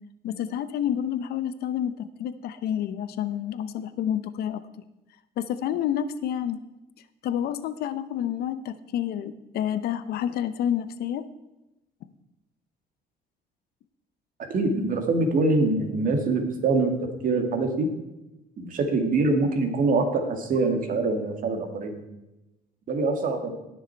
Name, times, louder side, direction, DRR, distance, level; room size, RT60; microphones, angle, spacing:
voice 1, 0.2-4.6 5.4-6.6 7.2-11.3, left 10 dB, 70° left, 14 dB, 0.7 m, -29 dB
voice 2, 14.5-16.9 17.2-17.9 18.6-22.0 22.9-23.5, right 3 dB, 55° right, 5 dB, 2.0 m, -24 dB
18.0 x 6.3 x 4.5 m, 0.97 s
cardioid pair, 110°, 17 cm